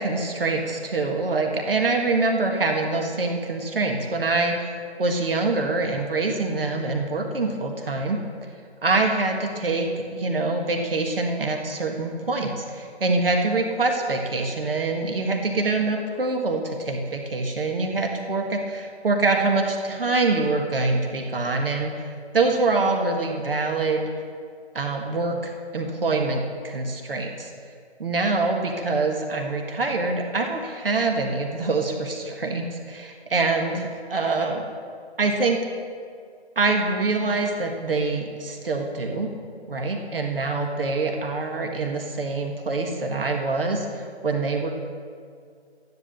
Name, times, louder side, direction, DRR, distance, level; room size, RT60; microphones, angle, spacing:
voice 1, 0.0-8.2 8.8-24.1 24.7-27.5 28.0-34.6 35.2-35.6 36.5-39.3 39.7-44.7, right 3 dB, 55° right, 2 dB, 1.7 m, -25 dB
13.5 x 11.0 x 6.8 m, 2.2 s
figure-of-eight pair, 165°, 33 cm